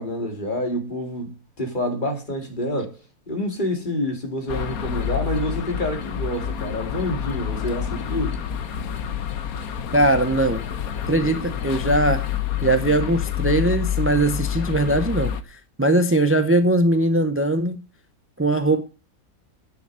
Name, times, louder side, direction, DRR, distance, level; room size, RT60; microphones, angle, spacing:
voice 1, 0.0-3.0 3.3-8.4, left 1 dB, 30° left, 2.3 m, -27 dB
sound 1, 4.5-15.4, left 9 dB, 70° left, 1.4 m, -28 dB
voice 2, 9.9-10.7 11.1-12.3 12.6-17.8 18.4-18.8, right 2 dB, 20° right, 0.3 m, -20 dB
9.6 x 6.7 x 6.2 m
omnidirectional pair, 1.6 m